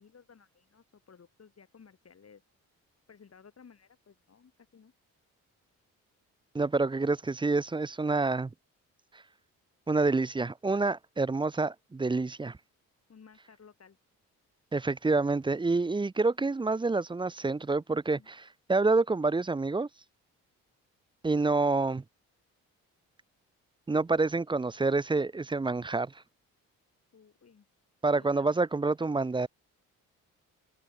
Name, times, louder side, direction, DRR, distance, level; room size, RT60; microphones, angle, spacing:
voice 1, 0.0-2.4 3.1-4.9 13.1-14.0 18.1-18.3 27.1-27.7 28.2-28.5, left 6 dB, 45° left, 4.9 m, -57 dB
voice 2, 6.5-8.5 9.9-12.6 14.7-19.9 21.2-22.0 23.9-26.1 28.0-29.5, right 3 dB, 15° right, 0.5 m, -27 dB
supercardioid pair, 60°, 34 cm